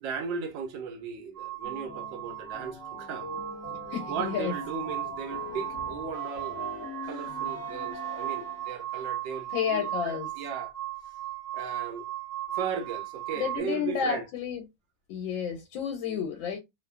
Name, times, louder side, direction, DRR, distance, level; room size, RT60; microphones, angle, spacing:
voice 1, 0.0-3.4 4.1-6.7 7.1-10.7 11.5-12.0 12.5-14.2, right 6 dB, 75° right, 1.3 m, -36 dB
sound 1, 1.4-13.6, right 13 dB, 60° right, 1.1 m, -37 dB
sound 2, 1.6-8.9, left 3 dB, 50° left, 1.1 m, -42 dB
voice 2, 3.9-4.5 9.5-10.3 13.3-14.6 15.1-16.6, left 7 dB, 85° left, 1.4 m, -31 dB
3.2 x 2.1 x 2.2 m
omnidirectional pair, 2.1 m